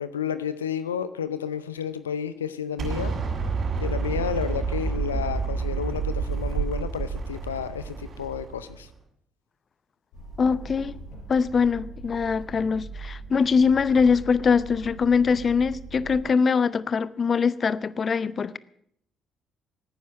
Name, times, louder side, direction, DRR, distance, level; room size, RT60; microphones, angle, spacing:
voice 1, 0.0-3.1 3.8-8.9, left 8 dB, 90° left, 0.5 m, -31 dB
Explosion, 2.8-8.8, right 5 dB, 55° right, 6.2 m, -29 dB
sound 1, 10.1-16.2, right 3 dB, 70° left, 4.8 m, -41 dB
voice 2, 10.4-11.0 11.3-18.6, left 5 dB, 45° left, 0.7 m, -22 dB
16.5 x 9.6 x 7.6 m
hypercardioid pair, 50°, 0 cm